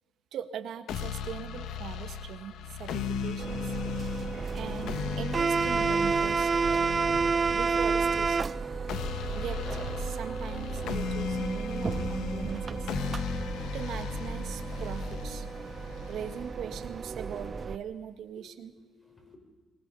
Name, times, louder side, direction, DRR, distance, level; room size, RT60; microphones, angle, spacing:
voice 1, 0.3-3.7 4.5-7.0 7.5-8.6 9.3-12.9 13.3-13.4 13.7-15.5 16.1-18.7, right 8 dB, 75° right, 9 dB, 1.7 m, -40 dB
sound 1, 0.9-16.9, left 6 dB, 85° left, 1.3 m, -37 dB
sound 2, 3.4-17.8, right 5 dB, 40° right, 0.7 m, -31 dB
voice 2, 15.5-16.4 16.7-16.8 18.3-18.5 18.7-19.4, left 4 dB, 25° left, 3 dB, 6.1 m, -59 dB
22.5 x 20.0 x 7.0 m, 1.3 s
cardioid pair, 90°, 0 cm